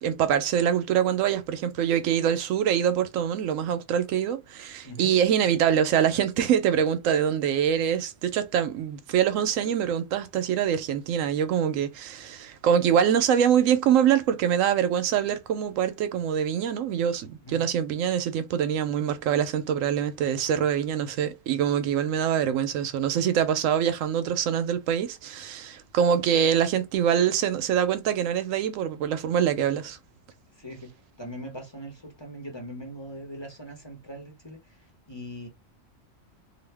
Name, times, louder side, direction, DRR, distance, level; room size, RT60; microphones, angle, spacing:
voice 1, 0.0-30.0, right 9 dB, 85° right, 1.0 m, -24 dB
voice 2, 4.8-5.2 17.4-17.7 30.5-35.5, equal, 25° left, 0.8 m, -41 dB
2.8 x 2.4 x 3.3 m
omnidirectional pair, 1.3 m